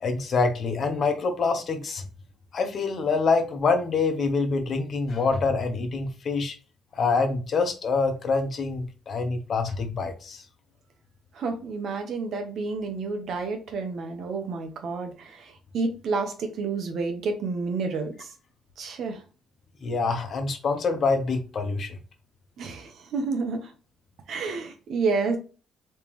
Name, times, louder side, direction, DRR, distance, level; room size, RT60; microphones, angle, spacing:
voice 1, 0.0-2.0 2.5-6.5 6.9-10.4 19.8-22.0, left 4 dB, 55° left, 0.9 m, -26 dB
voice 2, 11.3-18.3 18.8-19.2 22.6-23.7 24.3-25.4, right 4 dB, 70° right, 1.0 m, -30 dB
3.5 x 3.3 x 3.1 m
cardioid pair, 90°, 0 cm